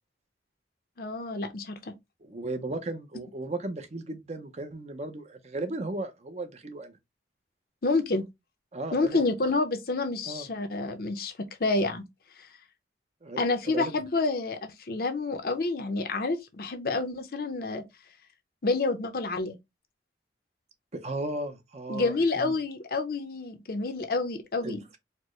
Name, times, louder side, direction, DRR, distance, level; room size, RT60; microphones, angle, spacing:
voice 1, 1.0-1.9 7.8-8.3 8.9-12.0 12.4-12.5 13.4-17.8 18.6-19.6 21.9-24.8, left 3 dB, 55° left, 0.6 m, -28 dB
voice 2, 2.2-7.0 8.7-9.3 10.2-10.5 13.2-13.9 20.9-22.5 24.6-25.0, right 2 dB, 40° right, 0.6 m, -36 dB
4.4 x 2.1 x 3.0 m
head